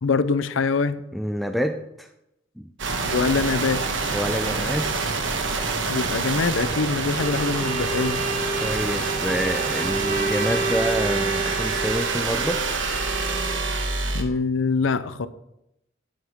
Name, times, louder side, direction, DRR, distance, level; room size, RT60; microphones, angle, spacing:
voice 1, 0.0-1.0 3.1-3.8 5.9-8.2 14.1-15.3, left 4 dB, 85° left, 14 dB, 0.6 m, -24 dB
voice 2, 1.1-2.1 2.6-2.7 4.1-4.9 8.6-12.7, equal, ahead, 6 dB, 0.4 m, -27 dB
sound 1, 2.8-14.2, right 4 dB, 70° right, 1.2 m, -27 dB
Bowed string instrument, 7.1-13.7, right 3 dB, 45° right, 1.5 m, -30 dB
11.5 x 8.8 x 3.6 m, 0.85 s
head